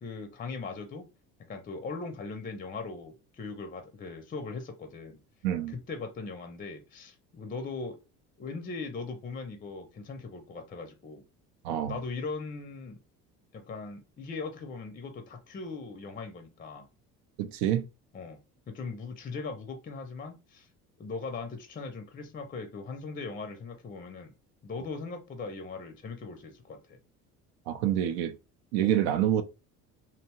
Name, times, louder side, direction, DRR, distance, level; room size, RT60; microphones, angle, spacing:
voice 1, 0.0-1.0 1.4-5.2 5.7-8.0 8.4-11.2 11.9-13.0 13.5-16.9 18.1-18.4 18.7-20.7 21.0-24.3 24.6-27.0, left 4 dB, 20° left, 0.6 m, -39 dB
voice 2, 5.4-5.7 11.6-12.0 17.4-17.9 27.7-28.3 28.7-29.4, right 11 dB, 60° right, 0.5 m, -27 dB
2.8 x 2.2 x 2.9 m
figure-of-eight pair, 60°, 47 cm